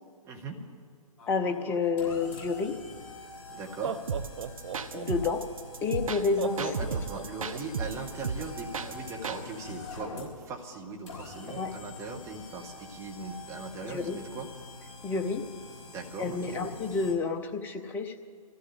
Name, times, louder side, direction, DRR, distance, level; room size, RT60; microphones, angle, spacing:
voice 1, 0.2-0.6 3.5-4.0 6.5-14.5 15.9-16.8, right 3 dB, 15° right, 0 dB, 1.6 m, -39 dB
sound 1, 1.2-17.1, left 3 dB, 50° left, 5.4 m, -46 dB
voice 2, 1.3-2.8 4.9-5.4 5.8-6.7 11.6-11.7 13.9-14.2 15.0-15.5 16.2-18.1, left 4 dB, 10° left, 7 dB, 0.7 m, -29 dB
Laughter, 3.7-5.4 6.4-7.6, right 8 dB, 50° right, 0.6 m, -36 dB
sound 2, 4.1-9.4, right 5 dB, 65° right, 0.9 m, -34 dB
24.0 x 15.0 x 3.5 m, 2.1 s
figure-of-eight pair, 130°, 19 cm